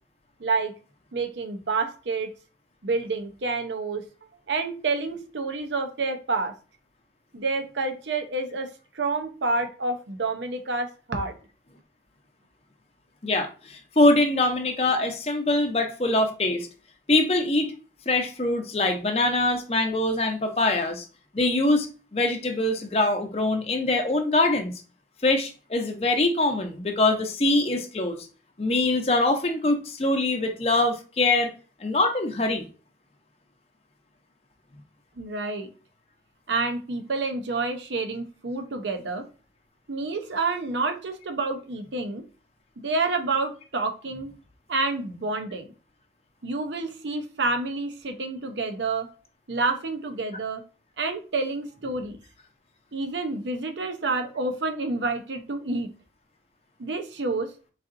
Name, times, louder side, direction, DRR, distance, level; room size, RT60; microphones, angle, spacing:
voice 1, 0.4-0.7 1.1-2.3 2.8-4.0 4.5-6.5 7.3-8.7 8.9-11.4 35.2-35.7 36.5-39.2 39.9-42.2 42.8-44.3 44.7-45.7 46.4-49.1 49.5-50.6 51.0-52.2 52.9-55.9 56.8-57.5, right 3 dB, 85° right, 6 dB, 0.7 m, -28 dB
voice 2, 13.2-16.7 17.1-17.7 18.1-21.0 21.3-21.9 22.1-24.7 25.2-28.2 28.6-31.5 31.8-32.6, left 2 dB, 35° left, 5 dB, 0.6 m, -23 dB
4.1 x 3.8 x 2.5 m, 0.36 s
head